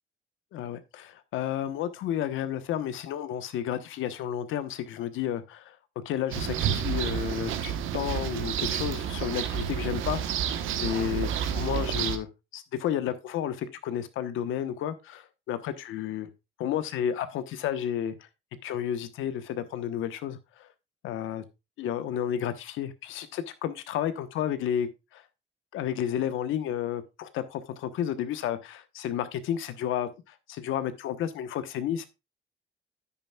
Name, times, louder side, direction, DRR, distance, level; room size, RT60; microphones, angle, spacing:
voice 1, 0.5-5.8 6.0-10.4 10.8-12.3 12.5-16.3 16.6-18.3 18.6-20.7 21.0-21.4 21.8-25.2 25.7-32.1, left 10 dB, 90° left, 1.1 m, -32 dB
sound 1, 6.3-12.2, right 9 dB, 90° right, 1.2 m, -30 dB
10.0 x 9.2 x 2.3 m
cardioid pair, 90°, 20 cm